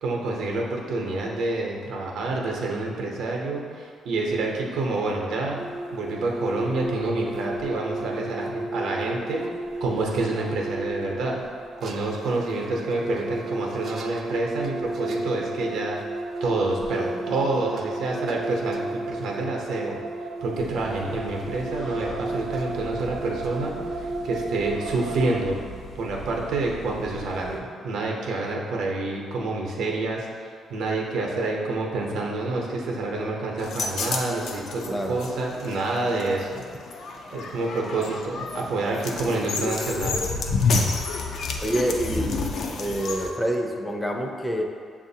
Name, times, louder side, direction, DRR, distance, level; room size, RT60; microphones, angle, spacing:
voice 1, 0.0-5.6 5.9-9.4 9.8-11.4 11.8-16.0 16.4-20.0 20.4-25.6 25.9-30.3 30.7-36.6 37.3-40.2, right 2 dB, 80° right, -1 dB, 0.7 m, -28 dB
sound 1, 5.6-25.4, right 2 dB, 50° right, 0.4 m, -33 dB
sound 2, 20.6-27.6, equal, 85° left, 0.9 m, -41 dB
sound 3, 33.6-43.3, left 4 dB, 70° left, 0.4 m, -29 dB
voice 2, 41.6-42.5 42.8-44.6, right 1 dB, 5° left, 1 dB, 0.5 m, -27 dB
6.6 x 2.5 x 2.7 m, 2.1 s
cardioid pair, 90°, 0 cm